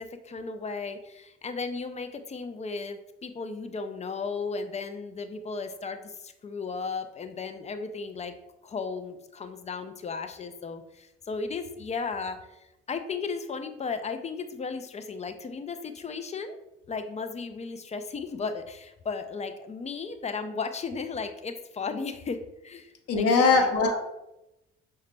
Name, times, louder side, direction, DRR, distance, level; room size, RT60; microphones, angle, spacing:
voice 1, 0.0-8.3 8.6-12.4 12.9-16.6 16.9-23.8, left 4 dB, 20° left, 8 dB, 0.4 m, -35 dB
voice 2, 23.1-24.0, left 4 dB, 50° left, 4 dB, 0.8 m, -21 dB
5.5 x 2.2 x 3.2 m, 0.91 s
figure-of-eight pair, 45°, 32 cm